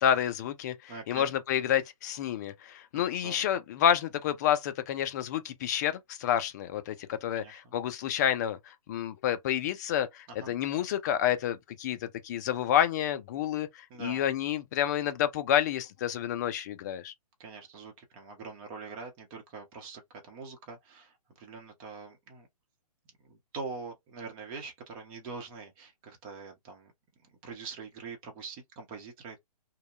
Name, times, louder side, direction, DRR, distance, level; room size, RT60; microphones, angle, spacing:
voice 1, 0.0-17.1, left 10 dB, 30° left, 0.4 m, -29 dB
voice 2, 0.9-1.3 2.9-3.5 7.4-7.8 10.3-10.6 13.9-14.3 17.4-22.5 23.2-26.9 27.4-29.4, right 4 dB, 25° right, 0.8 m, -44 dB
2.7 x 2.2 x 2.4 m
hypercardioid pair, 140°, 20 cm